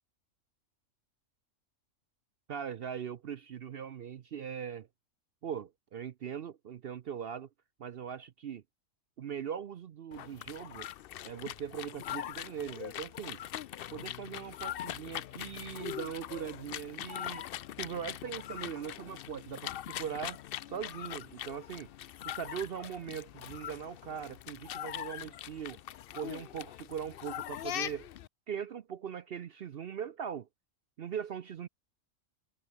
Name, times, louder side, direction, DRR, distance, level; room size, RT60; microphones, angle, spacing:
voice 1, 2.5-4.9 5.4-7.5 7.8-8.6 9.2-10.9 11.2-13.4 13.9-17.5 17.8-20.4 20.7-21.9 22.2-25.8 26.1-28.1 28.5-30.5 31.0-31.7, right 8 dB, 55° right, 0.8 m, -40 dB
sound 1, 10.1-28.3, left 12 dB, 60° left, 0.6 m, -42 dB
omnidirectional pair, 1.3 m